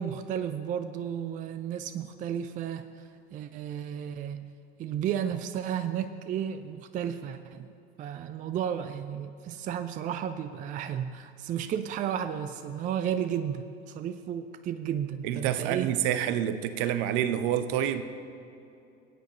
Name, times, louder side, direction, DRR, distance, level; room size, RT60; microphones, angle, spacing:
voice 1, 0.0-4.5 4.8-7.7 8.0-15.9, right 9 dB, 25° right, 11 dB, 0.4 m, -33 dB
voice 2, 15.2-18.0, right 10 dB, 55° right, 12 dB, 0.7 m, -27 dB
18.5 x 9.2 x 2.9 m, 2.6 s
figure-of-eight pair, 70°, 32 cm